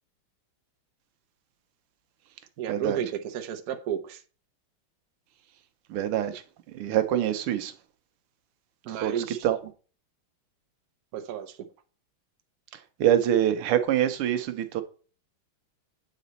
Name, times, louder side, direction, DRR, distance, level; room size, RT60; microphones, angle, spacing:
voice 1, 2.6-4.2 8.8-9.5 11.1-11.6, right 9 dB, 60° right, 1.0 m, -32 dB
voice 2, 5.9-6.3 6.7-7.7 9.0-9.1 9.4-9.6 13.0-14.8, right 11 dB, 85° right, 1.7 m, -24 dB
8.2 x 4.2 x 4.0 m
omnidirectional pair, 2.4 m